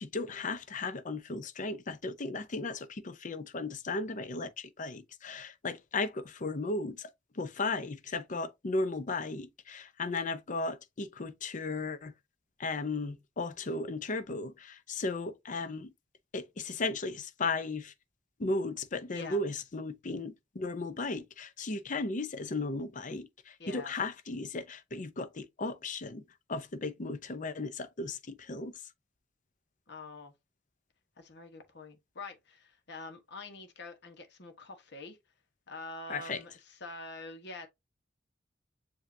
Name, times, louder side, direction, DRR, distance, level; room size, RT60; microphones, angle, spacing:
voice 1, 0.0-12.1 12.6-15.9 16.3-17.9 18.4-26.2 26.5-28.8 36.1-36.4, left 3 dB, 45° left, 0.6 m, -35 dB
voice 2, 23.6-23.9 29.9-30.3 31.2-35.2 35.7-37.7, left 2 dB, 65° left, 1.2 m, -45 dB
7.2 x 2.7 x 2.7 m
head